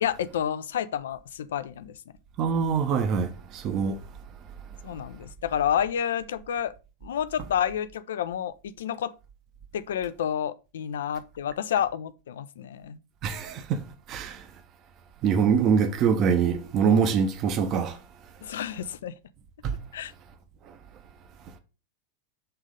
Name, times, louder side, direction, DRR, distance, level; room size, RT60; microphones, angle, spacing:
voice 1, 0.0-2.0 4.8-6.7 7.0-9.1 9.7-13.0 18.4-19.1 19.9-20.1, left 9 dB, 60° left, 0.5 m, -29 dB
voice 2, 2.4-4.0 13.2-14.5 15.2-18.0 19.6-19.7 20.7-20.8, right 6 dB, 35° right, 0.8 m, -24 dB
6.8 x 3.6 x 5.1 m
figure-of-eight pair, 90°, 0 cm